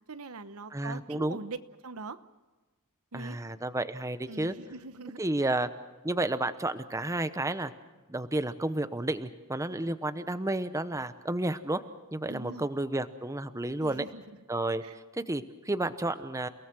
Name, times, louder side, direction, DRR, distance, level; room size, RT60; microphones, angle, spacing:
voice 1, 0.1-1.6 1.8-2.2 3.1-3.4 4.3-5.5 12.3-12.7 13.8-14.2 14.8-15.0, right 3 dB, 80° right, 12 dB, 1.1 m, -42 dB
voice 2, 0.7-1.4 3.1-4.5 5.2-5.7 6.0-7.7 8.1-11.8 12.1-14.0 14.5-14.8 15.1-16.5, right 2 dB, 15° right, 11 dB, 0.9 m, -31 dB
30.0 x 18.0 x 6.1 m, 1.2 s
head